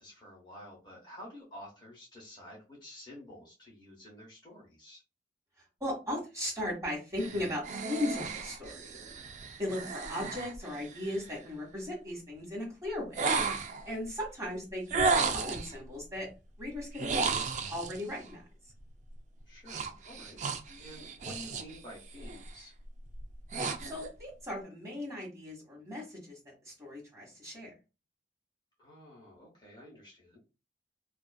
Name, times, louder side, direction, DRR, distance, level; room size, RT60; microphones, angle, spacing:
voice 1, 0.0-5.0 14.5-14.6 19.4-22.7 28.8-30.4, left 1 dB, 25° left, -3 dB, 0.8 m, -50 dB
voice 2, 5.6-9.0 9.6-13.3 13.8-16.3 16.6-17.1 17.7-18.4 23.8-27.7, left 1 dB, 20° right, -4 dB, 1.3 m, -37 dB
sound 1, 7.2-11.4 13.1-13.9 14.9-15.7 16.9-18.0 19.7-21.8 22.1-22.5 23.1-24.1, right 4 dB, 40° right, 0.3 m, -33 dB
2.5 x 2.3 x 2.2 m, 0.30 s
head